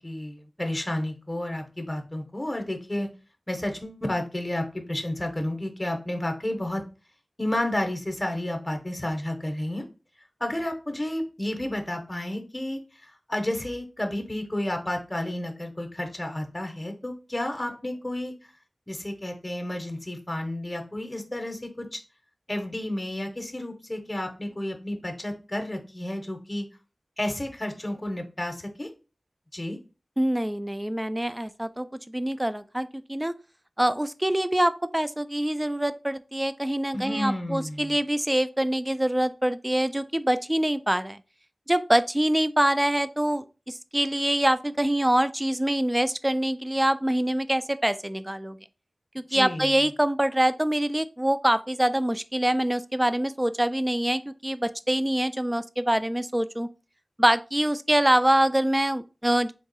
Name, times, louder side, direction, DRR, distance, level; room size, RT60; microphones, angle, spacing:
voice 1, 0.0-3.1 3.5-6.8 7.4-9.8 10.4-18.3 18.9-22.0 22.5-26.7 27.2-28.9 29.5-29.8 36.9-38.0 49.3-49.7, left 1 dB, 20° left, 0.8 m, -31 dB
voice 2, 30.2-33.3 33.8-41.2 41.7-48.6 49.1-56.7 57.2-59.5, right 1 dB, 15° right, 0.3 m, -25 dB
3.6 x 2.4 x 4.0 m
wide cardioid pair, 60°, 0 cm